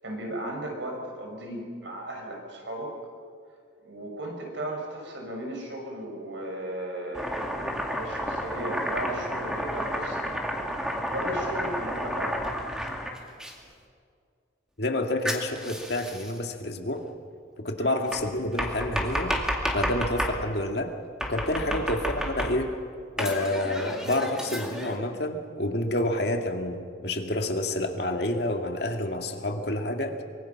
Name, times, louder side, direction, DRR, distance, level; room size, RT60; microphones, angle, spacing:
voice 1, 0.0-2.9 3.8-10.3 11.1-12.5 17.8-17.9 21.6-21.8, right 1 dB, 80° right, 1 dB, 5.9 m, -36 dB
Domestic sounds home sounds, 7.1-13.5 15.3-16.4 18.1-20.4 21.2-22.8 23.2-25.0, equal, 5° right, 2.1 m, -31 dB
voice 2, 14.8-17.0 17.6-19.4 19.7-20.9 21.3-22.7 23.2-30.2, left 1 dB, 60° left, 4 dB, 2.1 m, -28 dB
24.5 x 23.5 x 5.9 m, 2.2 s
head